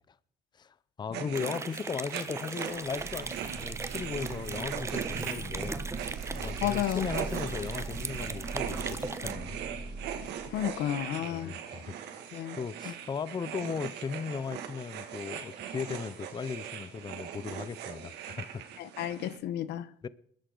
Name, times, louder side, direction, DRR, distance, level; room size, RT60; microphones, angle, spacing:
voice 1, 0.5-5.8 6.3-9.6 10.5-10.6 11.2-18.6 20.0-20.1, left 6 dB, 25° left, 0.5 m, -37 dB
sound 1, 1.1-19.4, right 9 dB, 90° right, 2.1 m, -40 dB
sound 2, 1.3-9.3, right 3 dB, 15° right, 0.9 m, -40 dB
sound 3, 2.7-11.2, right 4 dB, 55° right, 2.4 m, -40 dB
voice 2, 6.6-7.1 10.5-11.5 12.3-12.6 12.8-12.9 18.8-19.9, left 12 dB, 85° left, 0.9 m, -32 dB
21.0 x 13.0 x 3.9 m
cardioid pair, 110°, 17 cm